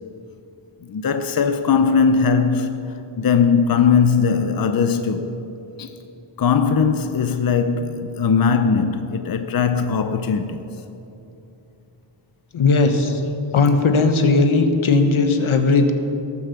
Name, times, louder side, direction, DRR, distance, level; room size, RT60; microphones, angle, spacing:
voice 1, 0.8-5.3 5.8-5.9 6.4-10.7, left 6 dB, 50° left, 0.7 m, -19 dB
voice 2, 12.5-13.2 13.5-15.9, left 3 dB, 85° left, 1.3 m, -17 dB
18.5 x 7.2 x 7.1 m
wide cardioid pair, 135°, 47 cm